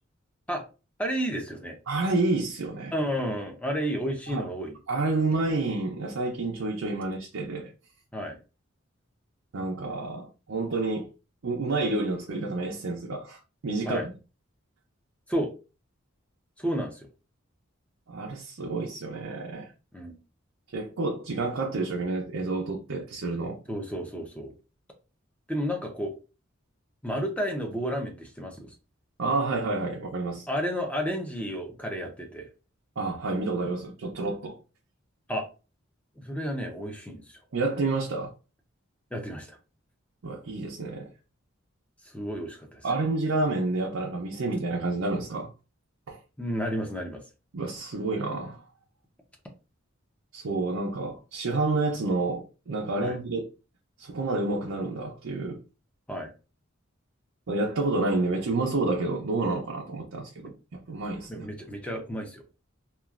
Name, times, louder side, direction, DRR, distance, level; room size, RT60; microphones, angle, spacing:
voice 1, 1.0-1.8 2.9-4.8 8.1-8.4 13.9-14.1 15.3-15.5 16.6-17.1 19.9-20.2 23.7-24.5 25.5-26.1 27.0-28.7 30.5-32.5 35.3-35.5 36.2-37.4 39.1-39.6 42.0-42.8 46.4-47.2 53.0-53.2 56.1-56.3 61.3-62.4, equal, 5° left, 0.6 m, -31 dB
voice 2, 1.9-2.9 4.3-4.4 4.9-7.7 9.5-11.1 11.4-14.1 18.1-19.7 20.7-23.6 29.2-30.4 33.0-34.6 37.5-38.3 40.2-41.1 42.8-45.5 46.1-46.2 47.5-48.6 50.3-53.5 54.0-55.6 57.5-61.5, right 3 dB, 80° right, 0.5 m, -29 dB
3.0 x 2.3 x 2.4 m
head